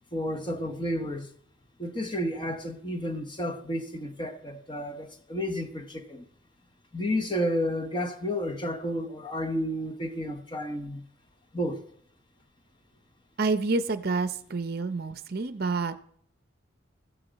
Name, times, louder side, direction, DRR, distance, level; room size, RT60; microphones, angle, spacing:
voice 1, 0.1-1.3 1.8-6.2 6.9-11.1 11.5-11.8, equal, 25° left, 1.0 m, -31 dB
voice 2, 13.4-16.0, right 3 dB, 50° right, 0.7 m, -28 dB
14.5 x 7.0 x 4.1 m
head